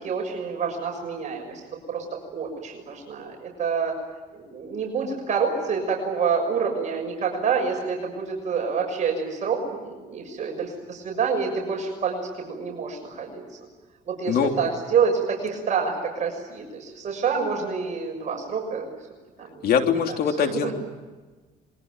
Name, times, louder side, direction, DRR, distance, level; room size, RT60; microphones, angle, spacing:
voice 1, 0.0-1.6 1.9-4.0 4.3-13.4 14.1-18.9 19.4-20.0 20.4-20.7, right 6 dB, 45° right, 1 dB, 6.6 m, -27 dB
voice 2, 19.6-20.7, left 7 dB, 65° left, 5 dB, 3.3 m, -22 dB
26.0 x 23.0 x 9.2 m, 1.3 s
cardioid pair, 110°, 17 cm